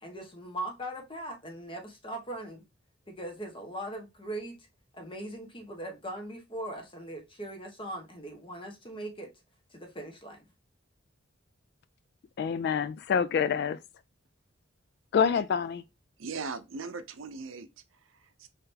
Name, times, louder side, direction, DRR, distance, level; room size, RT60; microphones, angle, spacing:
voice 1, 0.0-2.6 3.1-4.6 4.9-9.3 9.7-10.5, right 1 dB, 25° left, 1.0 m, -40 dB
voice 2, 12.4-13.8 15.1-15.8, left 7 dB, 55° left, 0.3 m, -27 dB
voice 3, 16.2-18.5, right 4 dB, 75° right, 0.6 m, -40 dB
3.9 x 3.2 x 2.7 m
head